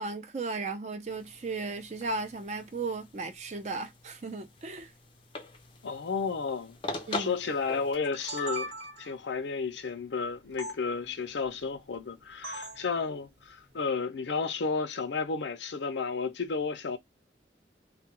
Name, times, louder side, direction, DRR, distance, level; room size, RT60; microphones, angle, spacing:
voice 1, 0.0-4.9 7.1-7.3, right 3 dB, 40° right, 0.5 m, -35 dB
sound 1, 1.1-7.9, left 3 dB, 30° left, 0.5 m, -42 dB
voice 2, 5.8-6.8 7.2-8.7 9.0-17.0, left 4 dB, 80° left, 0.6 m, -32 dB
sound 2, 7.9-9.2 10.6-10.8 12.4-12.9, right 1 dB, 85° right, 1.1 m, -38 dB
2.3 x 2.2 x 2.8 m
head